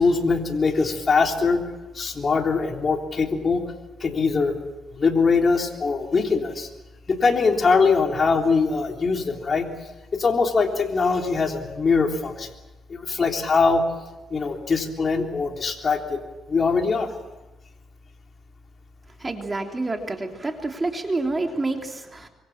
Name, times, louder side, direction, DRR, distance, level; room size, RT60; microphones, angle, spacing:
voice 1, 0.0-1.6 1.9-3.6 4.0-4.6 4.9-6.7 7.1-9.7 10.1-12.5 12.9-13.8 14.3-16.2 16.5-17.1, left 4 dB, 40° left, 2 dB, 3.5 m, -22 dB
voice 2, 19.2-22.3, right 2 dB, 20° right, 3 dB, 3.2 m, -28 dB
25.5 x 23.5 x 7.3 m, 1.1 s
cardioid pair, 90°, 0 cm